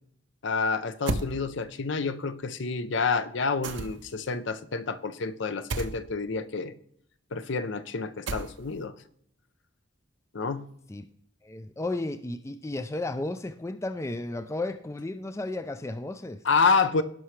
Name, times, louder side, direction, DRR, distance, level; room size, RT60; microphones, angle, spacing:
voice 1, 0.4-6.7 7.3-8.9 10.3-10.6 16.4-17.0, left 4 dB, 65° left, 0.6 m, -28 dB
sound 1, 1.1-1.3 3.6-4.2 5.7-6.0 8.3-8.8, right 3 dB, 65° right, 0.7 m, -31 dB
voice 2, 11.4-16.4, left 2 dB, 15° left, 0.3 m, -33 dB
16.5 x 5.7 x 3.2 m
head